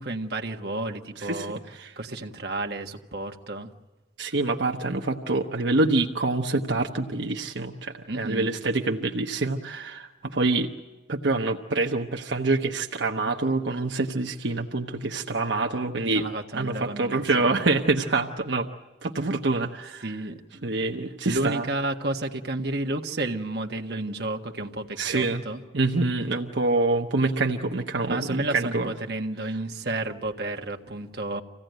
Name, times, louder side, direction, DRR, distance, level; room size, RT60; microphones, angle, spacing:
voice 1, 0.0-1.6 2.0-3.7 8.1-8.5 16.1-17.7 20.0-20.4 21.2-25.6 28.1-31.4, right 2 dB, 60° right, 3 dB, 1.5 m, -31 dB
voice 2, 4.2-10.7 11.1-16.2 16.5-18.7 19.0-20.1 20.6-21.7 25.0-25.4 25.7-28.9, right 3 dB, 85° right, 2 dB, 1.1 m, -26 dB
26.5 x 16.5 x 9.3 m, 1.1 s
head